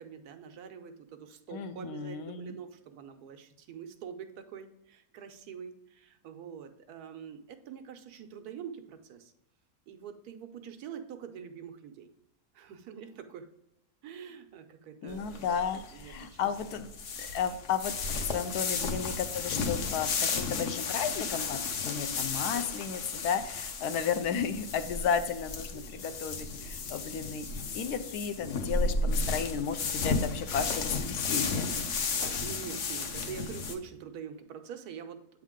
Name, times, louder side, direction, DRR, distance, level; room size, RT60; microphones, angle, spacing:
voice 1, 0.0-9.3 9.9-12.1 12.5-13.5 14.0-15.6 15.9-16.4 16.7-16.8 18.8-19.1 23.0-23.3 25.7-26.2 32.1-35.4, right 7 dB, 90° right, 7 dB, 1.2 m, -45 dB
voice 2, 1.5-2.6 15.0-16.9 17.2-27.5 27.7-31.7, left 7 dB, 80° left, 10 dB, 1.1 m, -33 dB
sound 1, 15.1-33.7, left 4 dB, 60° left, 0.9 m, -33 dB
8.1 x 3.7 x 3.6 m, 0.83 s
omnidirectional pair, 1.6 m